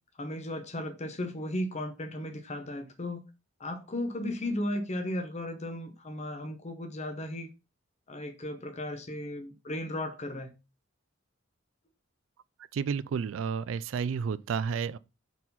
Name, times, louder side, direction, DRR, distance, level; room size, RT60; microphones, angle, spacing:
voice 1, 0.2-3.2 3.6-7.5 8.1-10.5, left 1 dB, 35° left, 0.8 m, -35 dB
voice 2, 12.7-15.0, right 6 dB, 70° right, 0.3 m, -31 dB
4.6 x 4.0 x 5.6 m
head